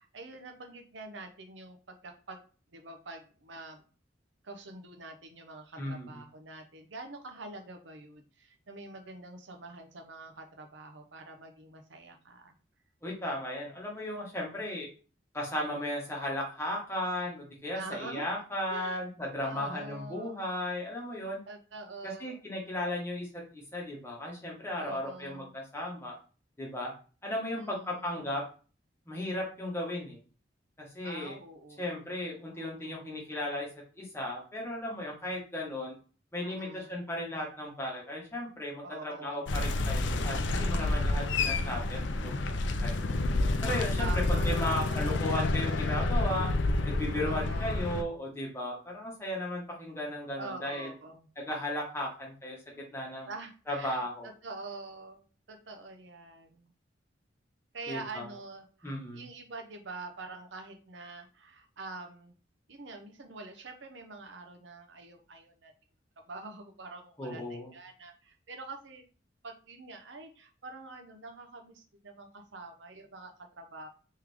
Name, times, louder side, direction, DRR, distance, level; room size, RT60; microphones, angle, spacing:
voice 1, 0.0-2.4 2.7-3.8 4.4-12.6 17.7-18.3 18.7-19.0 19.4-20.4 21.5-22.4 24.8-25.5 27.5-28.2 31.0-32.1 32.5-33.3 36.4-37.0 38.8-39.7 44.0-45.2 47.2-47.9 50.4-51.3 53.3-54.1 54.4-55.2 55.5-56.7 57.7-62.4 62.7-65.7 66.3-69.0 69.4-73.9, right 3 dB, 75° right, 4 dB, 0.8 m, -45 dB
voice 2, 5.8-6.2 13.0-14.9 15.3-21.4 22.0-26.1 26.6-26.9 27.2-28.4 29.1-30.2 30.8-31.4 31.8-33.7 34.0-35.9 36.3-42.4 42.8-43.1 43.6-46.5 46.8-50.9 51.4-52.6 52.9-53.3 53.7-54.3 57.9-58.2 58.8-59.3 67.2-67.7, left 1 dB, 15° left, -2 dB, 1.3 m, -35 dB
sound 1, 39.5-48.0, left 2 dB, 70° left, 0.5 m, -29 dB
3.6 x 3.2 x 3.4 m, 0.37 s
head